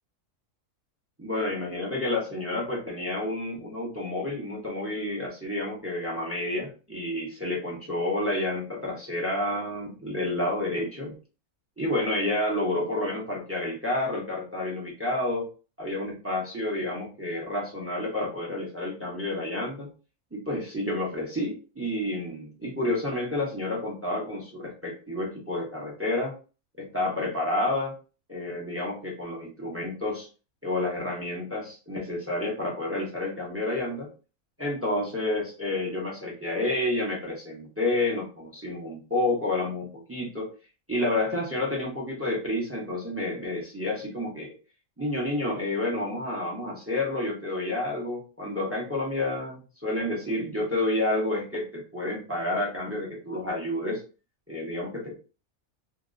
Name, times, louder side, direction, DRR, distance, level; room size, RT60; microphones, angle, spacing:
voice 1, 1.2-11.2 11.8-15.4 15.8-19.9 20.3-26.3 26.8-27.9 28.3-30.3 30.6-34.1 34.6-40.5 40.9-44.5 45.0-54.0 54.5-55.2, left 1 dB, 10° right, -3 dB, 0.7 m, -30 dB
2.9 x 2.9 x 2.6 m, 0.35 s
omnidirectional pair, 1.5 m